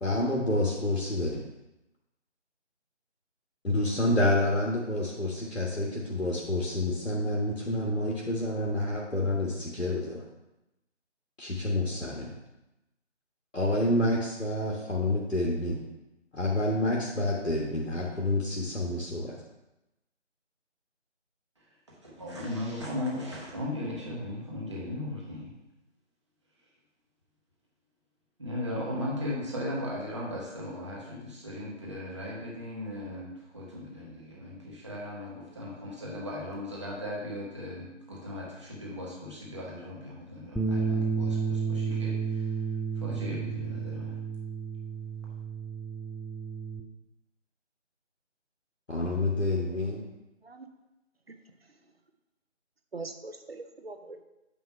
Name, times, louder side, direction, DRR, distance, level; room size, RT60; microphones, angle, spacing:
voice 1, 0.0-1.4 3.6-10.2 11.4-12.3 13.5-15.8 16.3-19.4 48.9-50.0, left 1 dB, 85° left, -3 dB, 1.5 m, -28 dB
voice 2, 22.0-25.5 28.4-42.5 42.9-44.2, left 1 dB, 25° right, -5 dB, 1.3 m, -37 dB
Bass guitar, 40.6-46.8, right 5 dB, ahead, 0.4 m, -31 dB
voice 3, 52.9-54.3, right 3 dB, 55° right, 6 dB, 0.8 m, -42 dB
9.1 x 3.2 x 5.6 m, 0.96 s
figure-of-eight pair, 160°, 36 cm